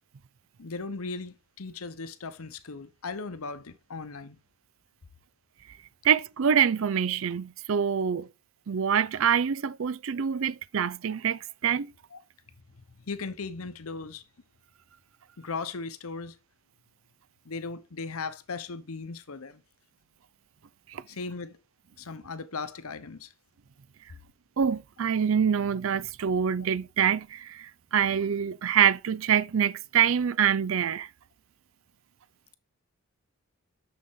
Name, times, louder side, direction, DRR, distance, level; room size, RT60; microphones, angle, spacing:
voice 1, 0.6-4.4 12.1-12.2 12.8-14.2 15.4-16.4 17.4-19.6 21.1-21.6 22.0-23.3, left 4 dB, 80° left, 0.9 m, -37 dB
voice 2, 6.0-8.3 8.7-11.9 20.9-21.0 24.6-31.1, right 8 dB, 65° right, 0.4 m, -25 dB
6.9 x 6.4 x 3.6 m
head